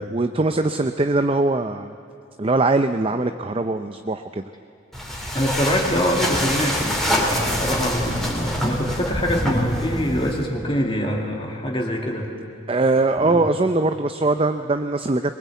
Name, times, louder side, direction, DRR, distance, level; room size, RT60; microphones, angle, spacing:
voice 1, 0.0-1.9 2.4-4.4 12.7-15.4, right 2 dB, 25° right, 8 dB, 0.5 m, -21 dB
sound 1, 4.9-10.5, equal, ahead, 3.0 m, -25 dB
voice 2, 5.3-12.3 13.2-13.5, equal, 25° left, 1 dB, 2.2 m, -24 dB
23.0 x 21.5 x 8.3 m, 2.6 s
head